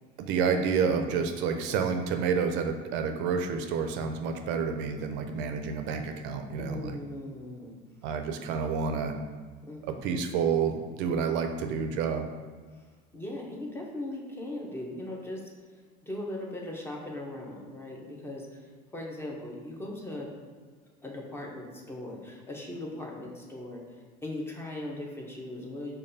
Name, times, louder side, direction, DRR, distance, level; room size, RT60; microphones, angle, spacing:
voice 1, 0.3-7.0 8.0-9.1 9.8-12.3, right 6 dB, 60° right, 6 dB, 0.4 m, -29 dB
voice 2, 6.6-7.8 9.7-10.1 13.1-15.4 16.0-18.6 18.9-20.3 21.0-23.8 24.2-26.0, left 1 dB, 10° left, -1 dB, 0.6 m, -39 dB
5.2 x 2.2 x 2.6 m, 1.5 s
supercardioid pair, 120°, 21 cm